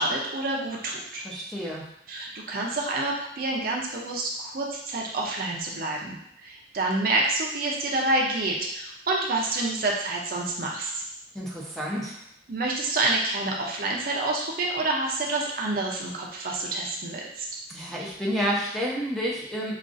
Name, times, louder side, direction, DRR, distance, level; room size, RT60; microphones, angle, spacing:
voice 1, 0.0-1.2 2.1-11.0 12.5-17.5, right 2 dB, 50° right, -1 dB, 0.6 m, -28 dB
voice 2, 1.2-1.8 11.3-12.2 17.7-19.8, equal, ahead, -5 dB, 0.7 m, -30 dB
5.0 x 2.4 x 2.5 m, 0.76 s
head